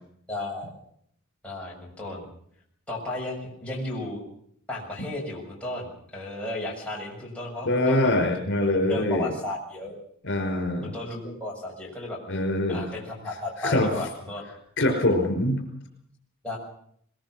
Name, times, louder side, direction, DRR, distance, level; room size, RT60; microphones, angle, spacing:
voice 1, 0.3-0.7 1.4-2.3 2.9-4.2 4.7-8.1 8.9-10.0 10.8-12.2 12.7-14.4 16.4-16.6, left 1 dB, 5° left, -4 dB, 6.8 m, -34 dB
voice 2, 7.7-9.3 10.2-10.9 12.3-12.9 13.6-13.9 14.8-15.6, left 1 dB, 60° left, 4 dB, 5.4 m, -24 dB
22.5 x 21.5 x 6.4 m, 0.66 s
head